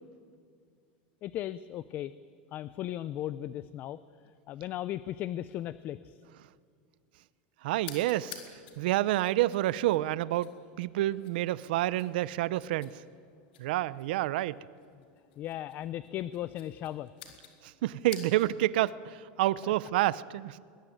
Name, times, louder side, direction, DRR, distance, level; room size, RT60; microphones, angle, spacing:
voice 1, 1.2-2.1 2.5-4.0 4.5-6.1 15.4-17.1 19.6-19.7, left 12 dB, 35° left, 16 dB, 0.6 m, -36 dB
voice 2, 7.6-8.4 8.8-10.5 10.8-13.0 13.6-14.6 17.6-20.6, right 15 dB, 80° right, 18 dB, 0.7 m, -28 dB
sound 1, 7.8-18.7, left 9 dB, 85° left, 4.0 m, -52 dB
21.5 x 21.5 x 9.3 m, 2.2 s
supercardioid pair, 150°, 5 cm